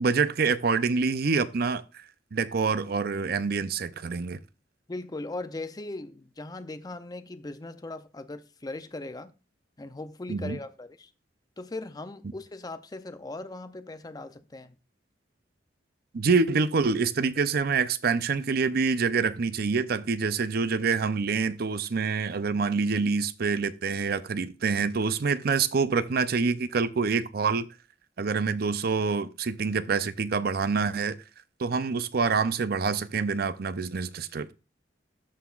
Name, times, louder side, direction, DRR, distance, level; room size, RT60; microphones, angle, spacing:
voice 1, 0.0-2.0 2.3-4.4 10.3-10.6 16.1-27.7 28.2-31.2 31.6-34.5, right 5 dB, 55° right, 0.5 m, -26 dB
voice 2, 4.9-9.3 9.8-11.1 11.6-14.8, left 2 dB, 20° left, 0.5 m, -39 dB
13.0 x 5.7 x 2.4 m
head